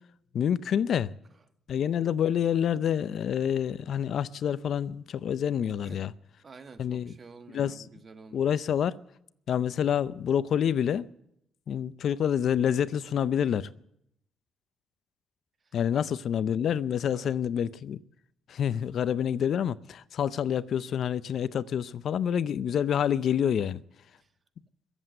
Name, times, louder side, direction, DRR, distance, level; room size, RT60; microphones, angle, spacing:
voice 1, 0.3-1.1 1.7-6.1 6.8-7.1 7.5-7.7 8.3-9.0 9.5-11.1 11.7-13.7 15.7-18.0 18.5-23.8, left 9 dB, 60° left, 0.5 m, -27 dB
voice 2, 6.4-8.6 15.6-16.1 17.1-17.4 24.2-24.3, right 4 dB, 35° right, 1.3 m, -50 dB
21.5 x 8.1 x 7.8 m
cardioid pair, 90°, 0 cm